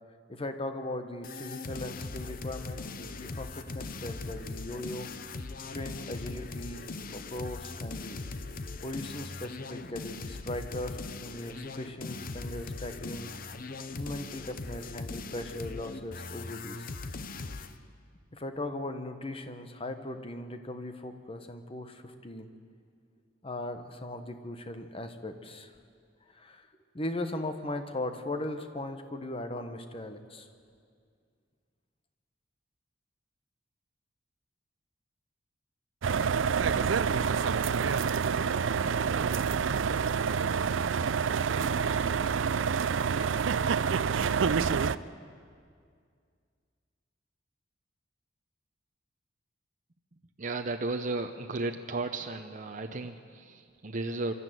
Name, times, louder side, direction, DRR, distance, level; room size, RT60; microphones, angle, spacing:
voice 1, 0.3-5.1 5.6-6.9 7.1-8.2 8.8-13.3 13.9-16.9 17.5-17.7 18.3-22.5 23.4-25.7 26.3-26.7 26.9-30.5, left 1 dB, 30° left, 8 dB, 1.3 m, -38 dB
sound 1, 1.2-17.8, left 3 dB, 50° left, 0.8 m, -40 dB
sound 2, 36.0-45.0, right 6 dB, 85° right, 0.5 m, -27 dB
voice 2, 50.4-54.3, right 2 dB, 45° right, 5 dB, 0.8 m, -34 dB
26.0 x 12.5 x 9.2 m, 2.2 s
head